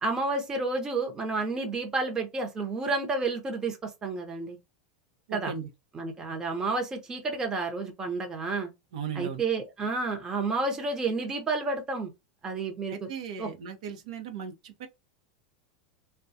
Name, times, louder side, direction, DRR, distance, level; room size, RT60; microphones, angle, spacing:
voice 1, 0.0-4.6 5.3-5.5 5.9-8.7 9.1-12.1 12.4-12.9 13.4-13.5, right 3 dB, 15° right, 0.8 m, -30 dB
voice 2, 5.3-5.7 8.9-9.4 12.9-14.9, right 7 dB, 80° right, 0.9 m, -37 dB
3.5 x 2.3 x 2.7 m
supercardioid pair, 150°, 4 cm